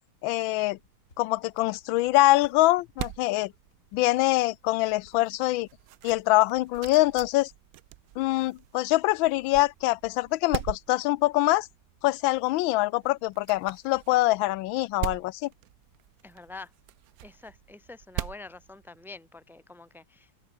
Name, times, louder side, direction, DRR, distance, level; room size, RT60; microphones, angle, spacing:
voice 1, 0.2-0.8 1.2-3.5 3.9-5.7 6.0-7.5 8.2-11.7 12.0-15.5, left 18 dB, 90° left, 1.3 m, -24 dB
sound 1, 0.7-19.4, right 15 dB, 80° right, 0.8 m, -42 dB
sound 2, 1.1-5.9 6.5-7.8, left 3 dB, 45° left, 4.0 m, -63 dB
voice 2, 16.2-16.7 17.2-20.3, left 3 dB, ahead, 2.2 m, -46 dB
open air
omnidirectional pair, 2.1 m